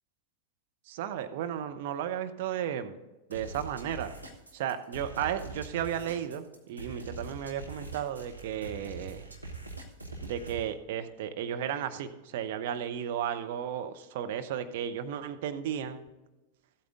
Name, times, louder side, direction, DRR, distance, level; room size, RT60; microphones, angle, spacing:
voice 1, 0.9-3.0 3.3-4.1 4.5-9.3 10.2-16.1, right 9 dB, 50° right, 8 dB, 0.8 m, -34 dB
sound 1, 3.3-10.7, right 3 dB, 85° right, 1.4 m, -43 dB
14.0 x 8.6 x 3.8 m, 1.1 s
figure-of-eight pair, 90°, 0 cm